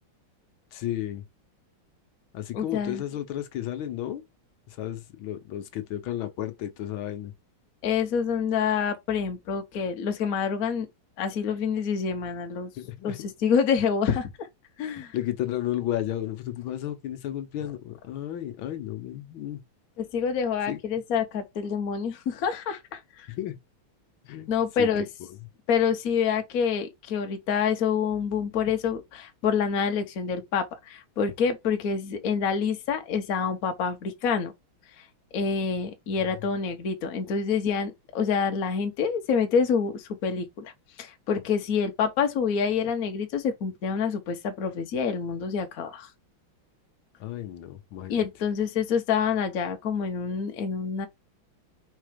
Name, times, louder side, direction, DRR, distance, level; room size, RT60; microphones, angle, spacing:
voice 1, 0.7-1.2 2.3-4.2 4.7-7.3 12.8-13.2 15.0-19.6 20.7-20.8 23.3-23.5 24.2-24.5 24.8-24.9 25.3-25.4 47.2-48.3, left 12 dB, 75° left, 1.6 m, -33 dB
voice 2, 2.5-3.0 7.8-10.9 11.2-12.7 13.0-13.1 13.4-14.5 14.8-15.1 20.0-23.3 24.5-25.1 25.7-34.5 35.0-35.1 35.3-40.7 41.0-46.1 48.1-51.1, left 6 dB, 50° left, 1.2 m, -27 dB
4.4 x 4.3 x 5.0 m
omnidirectional pair, 2.3 m